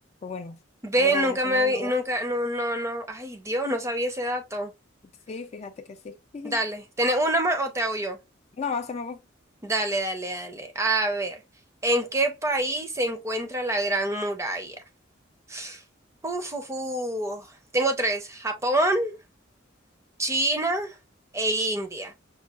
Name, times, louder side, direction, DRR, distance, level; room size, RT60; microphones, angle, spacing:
voice 1, 0.2-0.6 1.0-1.9 5.3-6.6 8.6-9.2, left 4 dB, 35° left, 0.3 m, -35 dB
voice 2, 0.8-4.7 6.4-8.2 9.6-11.4 11.8-14.8 15.5-15.8 16.2-17.5 17.7-19.1 20.2-21.0 21.3-22.1, right 1 dB, 15° right, 0.5 m, -26 dB
5.4 x 2.3 x 2.3 m
head